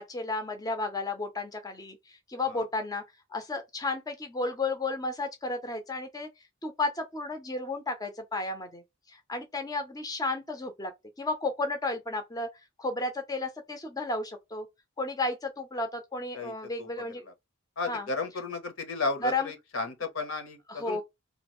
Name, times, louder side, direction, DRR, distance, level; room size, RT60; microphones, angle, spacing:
voice 1, 0.0-3.0 3.3-6.3 6.6-8.8 9.3-10.9 11.2-12.5 12.8-14.7 15.0-17.3 17.9-18.1 19.2-19.5 20.7-21.0, left 2 dB, 15° left, 0.6 m, -33 dB
voice 2, 17.8-21.0, left 3 dB, 70° left, 0.9 m, -34 dB
3.0 x 2.4 x 3.0 m
head